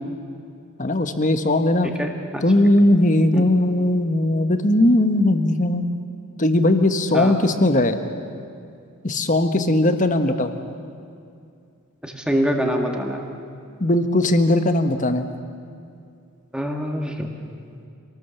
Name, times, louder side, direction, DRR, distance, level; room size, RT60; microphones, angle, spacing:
voice 1, 0.8-1.9 2.4-5.9 6.4-8.0 9.0-10.5 13.8-15.3, left 1 dB, 35° left, 8 dB, 1.3 m, -18 dB
voice 2, 1.8-2.4 3.3-3.4 7.1-7.3 12.0-13.3 16.5-17.3, equal, 5° right, 2 dB, 1.9 m, -25 dB
26.5 x 19.0 x 7.2 m, 2.4 s
head